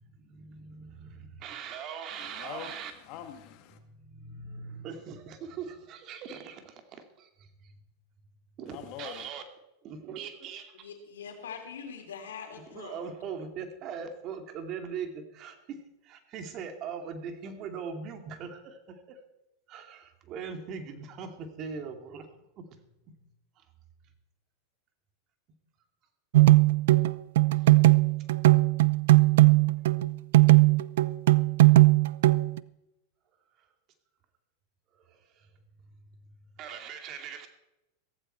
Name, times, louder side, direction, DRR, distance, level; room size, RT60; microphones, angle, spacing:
voice 1, 0.0-2.9 3.7-7.7 8.6-9.4 9.8-10.9 12.7-19.2 19.7-22.3 22.6-22.7 23.6-23.7 27.5-27.7 31.7-31.8 34.9-35.5 36.6-37.5, right 6 dB, 45° right, 2.4 m, -41 dB
voice 2, 2.1-3.8 8.7-9.3, left 10 dB, 50° left, 2.0 m, -44 dB
voice 3, 10.7-13.0, left 6 dB, 85° left, 3.3 m, -43 dB
sound 1, 26.3-32.6, right 18 dB, 70° right, 0.5 m, -19 dB
15.5 x 15.0 x 4.5 m
hypercardioid pair, 105°, 0 cm